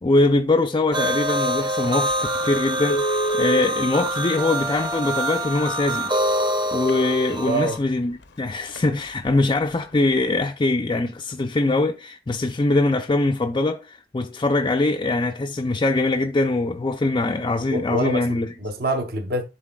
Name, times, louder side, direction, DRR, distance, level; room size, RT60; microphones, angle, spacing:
voice 1, 0.0-6.1 6.7-18.5, left 2 dB, 25° left, 0.4 m, -22 dB
sound 1, 0.9-7.8, right 1 dB, 25° right, 0.7 m, -25 dB
Telephone, 2.1-2.2 2.8-7.7 8.2-8.3 8.7-8.9 9.2-9.5 9.8-9.9, right 1 dB, 65° left, 0.7 m, -30 dB
voice 2, 7.4-7.8 17.7-19.4, right 2 dB, 55° right, 0.9 m, -26 dB
11.0 x 4.0 x 2.3 m
head